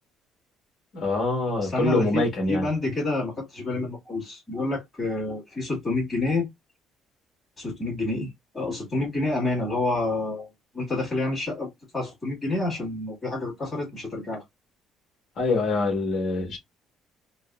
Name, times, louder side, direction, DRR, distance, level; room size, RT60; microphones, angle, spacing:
voice 1, 0.9-2.6 15.4-16.6, left 2 dB, 40° left, 1.6 m, -25 dB
voice 2, 1.6-6.5 7.6-8.3 8.5-10.5 10.7-14.4, left 2 dB, 10° left, 1.9 m, -28 dB
4.0 x 2.1 x 2.3 m
cardioid pair, 175°, 0 cm